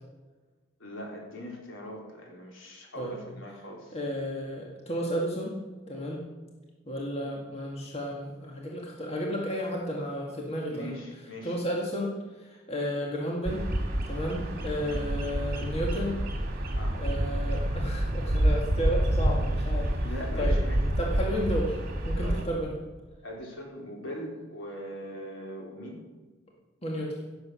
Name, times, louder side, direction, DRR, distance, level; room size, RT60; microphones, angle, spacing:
voice 1, 0.8-4.0 10.7-11.6 14.8-15.0 16.7-17.0 20.0-20.8 22.2-22.4 23.2-26.0, equal, 75° left, -1 dB, 3.8 m, -41 dB
voice 2, 3.9-5.5 5.9-6.2 6.9-10.9 11.4-12.1 12.4-13.6 14.1-16.2 16.9-19.9 20.4-20.6 21.0-21.8 22.0-22.7 26.8-27.2, equal, 30° left, -2 dB, 2.0 m, -32 dB
Bird vocalization bird call bird song, 13.4-22.4, right 1 dB, 50° right, 2.2 m, -28 dB
16.0 x 7.9 x 6.3 m, 1.3 s
head